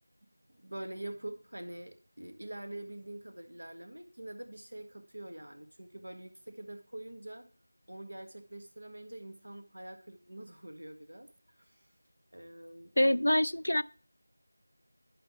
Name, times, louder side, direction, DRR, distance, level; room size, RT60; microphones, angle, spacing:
voice 1, 0.5-7.5 7.9-11.3 11.6-11.8 12.3-13.2, right 1 dB, 75° right, 1.6 m, -45 dB
voice 2, 13.0-13.8, left 1 dB, 85° left, 0.4 m, -25 dB
11.0 x 5.3 x 3.0 m
figure-of-eight pair, 175°, 0 cm